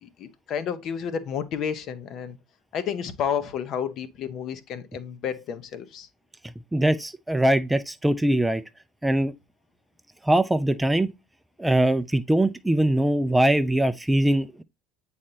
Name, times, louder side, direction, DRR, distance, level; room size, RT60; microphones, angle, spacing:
voice 1, 0.0-2.4 2.7-6.1, left 7 dB, 45° left, 0.8 m, -31 dB
voice 2, 6.7-8.6 9.0-9.3 10.2-11.1 11.6-14.6, right 1 dB, 5° right, 0.4 m, -22 dB
8.4 x 4.2 x 2.7 m
figure-of-eight pair, 65°, 0 cm